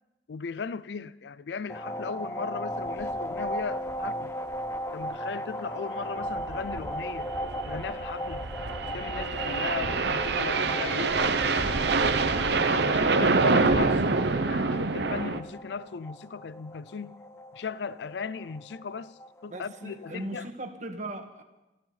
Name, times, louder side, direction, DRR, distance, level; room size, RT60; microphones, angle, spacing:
voice 1, 0.3-4.3 4.9-7.3 7.6-8.4 8.8-11.9 12.7-17.2 17.5-20.5, left 5 dB, 75° left, 0.5 m, -37 dB
sound 1, 1.7-20.3, equal, 15° left, 0.6 m, -37 dB
sound 2, 3.0-3.2 3.5-3.6 3.9-4.0 4.5-4.8 6.1-15.4, right 3 dB, 70° right, 0.8 m, -26 dB
voice 2, 13.2-14.5 19.5-21.4, right 2 dB, 45° right, 1.6 m, -40 dB
27.5 x 12.5 x 4.0 m
head